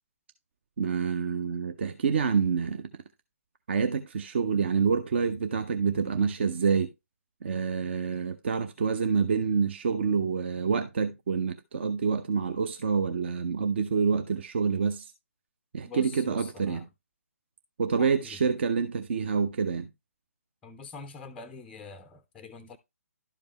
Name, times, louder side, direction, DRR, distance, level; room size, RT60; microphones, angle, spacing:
voice 1, 0.8-2.8 3.7-6.9 7.4-15.1 15.7-16.9 17.8-19.9, right 6 dB, 45° right, 0.6 m, -27 dB
voice 2, 15.8-16.9 18.0-18.4 20.6-22.8, left 5 dB, 10° left, 0.4 m, -45 dB
11.5 x 5.2 x 2.9 m
figure-of-eight pair, 140°, 8 cm